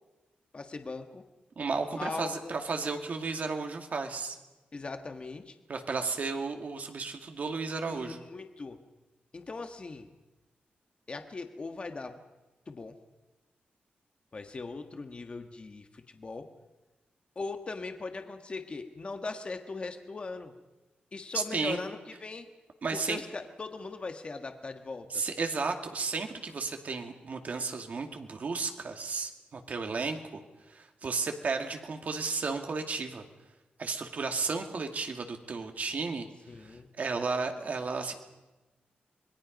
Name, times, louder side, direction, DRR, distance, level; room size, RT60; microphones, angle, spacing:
voice 1, 0.5-1.2 1.8-2.6 4.7-5.5 7.9-8.8 9.3-10.1 11.1-12.2 12.7-12.9 14.3-16.5 17.3-20.5 21.1-22.5 22.9-25.2 36.5-36.9, left 3 dB, 35° left, 6 dB, 1.5 m, -39 dB
voice 2, 1.6-4.4 5.7-8.2 21.3-21.8 22.8-23.2 25.1-30.2 30.7-33.2 33.8-36.3 37.0-38.1, right 4 dB, 50° right, 4 dB, 2.4 m, -33 dB
26.5 x 21.5 x 5.3 m, 1.1 s
wide cardioid pair, 135°, 3 cm